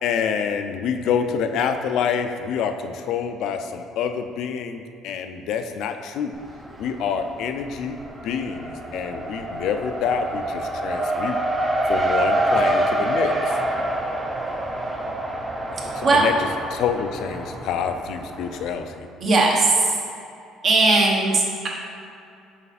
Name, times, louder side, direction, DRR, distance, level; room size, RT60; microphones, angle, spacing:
voice 1, 0.0-6.4 6.8-8.0 8.2-11.4 11.9-13.4 15.9-18.9, left 7 dB, 70° left, 7 dB, 0.4 m, -27 dB
Race car auto racing, 6.3-7.1 7.4-18.7, right 1 dB, 15° right, 0.6 m, -26 dB
voice 2, 19.2-19.7 20.6-21.7, right 2 dB, 45° right, -2 dB, 1.1 m, -18 dB
5.7 x 4.1 x 4.1 m, 2.6 s
cardioid pair, 125°, 0 cm